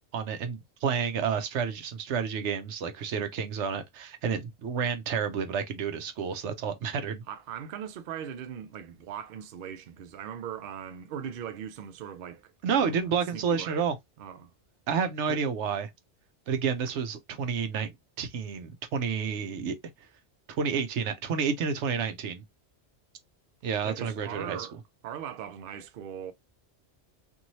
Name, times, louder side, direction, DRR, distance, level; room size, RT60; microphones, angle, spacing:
voice 1, 0.1-7.2 12.6-14.0 14.9-15.9 16.5-19.8 20.5-22.4 23.6-24.7, right 6 dB, 85° right, 1.0 m, -30 dB
voice 2, 7.3-12.5 12.8-13.0 13.3-13.9 14.2-14.5 15.3-15.4 23.8-24.7 25.0-26.3, right 8 dB, 60° right, 0.7 m, -39 dB
3.0 x 2.6 x 2.6 m
omnidirectional pair, 1.2 m